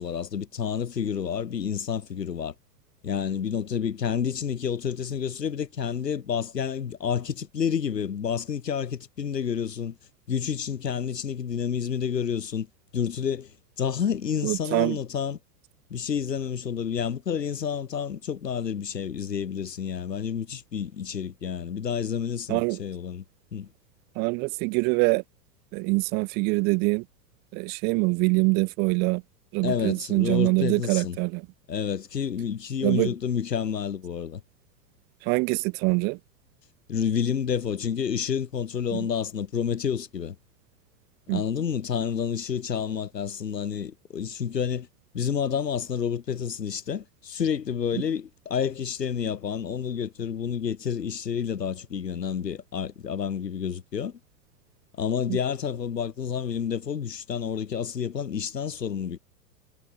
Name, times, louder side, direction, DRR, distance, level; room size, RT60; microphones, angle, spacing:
voice 1, 0.0-2.5 3.0-10.0 10.3-12.7 12.9-13.5 13.8-15.4 15.9-23.2 23.5-23.7 29.6-31.2 31.7-34.4 36.9-40.4 41.3-44.9 45.1-54.2 55.0-59.2, left 7 dB, 75° left, 1.9 m, -29 dB
voice 2, 14.4-15.0 22.5-22.8 24.2-25.2 25.7-27.0 27.5-29.2 29.5-31.4 32.8-33.1 35.2-36.2 38.9-39.0 41.3-41.4 55.3-55.4, right 31 dB, 20° right, 0.5 m, -24 dB
figure-of-eight pair, 100°, 49 cm